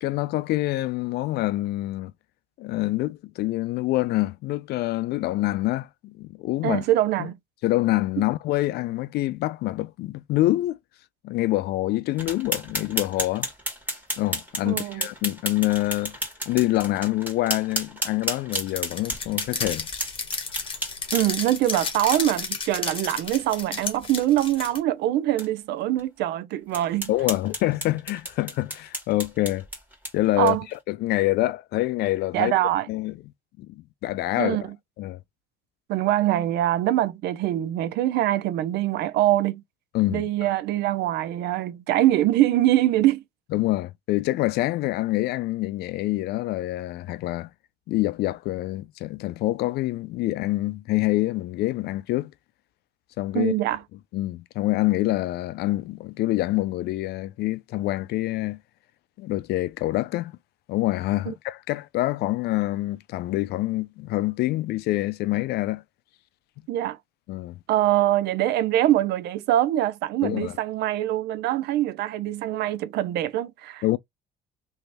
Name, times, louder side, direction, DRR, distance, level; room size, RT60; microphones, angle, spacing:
voice 1, 0.0-2.1 2.6-6.8 7.2-7.3 7.6-10.8 11.2-13.5 14.2-16.2 16.5-19.9 27.1-29.6 30.1-32.5 32.9-33.2 33.6-34.6 35.0-35.2 39.9-40.5 43.5-47.5 47.9-52.3 53.2-53.5 54.1-58.6 59.2-60.3 60.7-65.8 67.3-67.6 70.2-70.6 73.8-74.0, left 17 dB, 75° left, 0.4 m, -26 dB
voice 2, 6.6-7.4 14.7-15.1 21.1-27.1 30.4-30.7 32.3-32.9 34.4-34.7 35.9-39.6 40.1-43.2 53.3-53.8 61.3-61.4 66.7-67.0 67.7-73.8, right 13 dB, 75° right, 0.5 m, -23 dB
sound 1, 12.2-21.5 22.1-22.2 22.6-22.7 23.1-23.2 23.5-23.6 24.0-24.2 24.8-24.9 25.4-25.5 26.0-26.1 26.7-30.8, equal, 10° right, 1.9 m, -33 dB
sound 2, 18.5-24.8, left 5 dB, 30° left, 1.1 m, -32 dB
3.0 x 2.7 x 3.3 m
cardioid pair, 110°, 17 cm